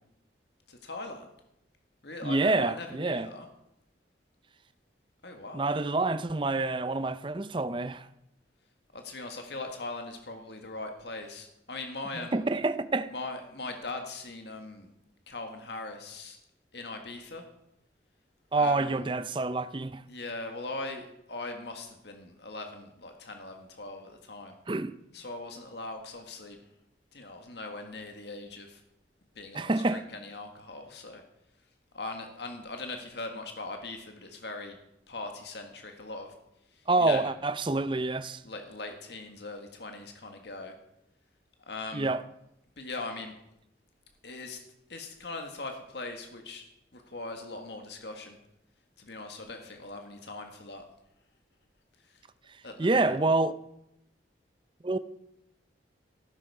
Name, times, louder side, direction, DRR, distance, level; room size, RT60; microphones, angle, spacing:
voice 1, 0.7-1.3 2.0-3.5 5.2-5.7 8.9-12.4 13.1-14.9 15.3-16.4 16.7-17.5 18.5-19.1 20.1-24.6 25.1-26.6 27.1-28.8 29.3-31.2 31.9-34.8 35.1-36.4 36.7-37.3 38.4-40.7 41.7-42.1 42.8-43.3 44.2-44.6 44.9-46.6 46.9-48.4 49.0-50.8 52.0-52.2 52.6-53.2, left 2 dB, 70° left, 1.6 m, -40 dB
voice 2, 2.2-3.3 5.5-8.1 12.1-13.1 18.5-20.0 24.7-24.9 29.5-30.0 36.9-38.4 41.9-42.2 52.8-53.5 54.8-55.0, right 2 dB, 25° right, 0.5 m, -27 dB
15.0 x 12.5 x 4.8 m
head